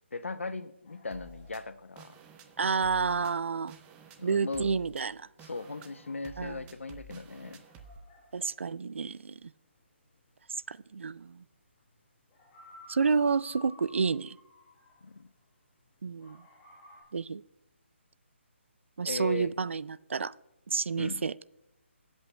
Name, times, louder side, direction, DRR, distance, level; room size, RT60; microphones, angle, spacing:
voice 1, 0.1-2.2 4.2-4.8 5.5-7.6 15.0-15.3 19.0-19.5 20.9-21.2, left 3 dB, 85° left, 12 dB, 0.7 m, -38 dB
sound 1, 0.8-15.8 16.2-17.0, left 1 dB, 20° left, 4.6 m, -57 dB
sound 2, 1.1-8.0, right 3 dB, 15° right, 0.7 m, -52 dB
voice 2, 2.6-3.7 4.2-5.3 6.4-6.6 8.3-9.5 10.7-11.4 12.9-14.4 16.0-16.4 17.1-17.4 19.0-20.3 20.7-21.3, right 5 dB, 75° right, 19 dB, 0.4 m, -30 dB
22.0 x 8.0 x 2.2 m, 0.91 s
figure-of-eight pair, 155°, 7 cm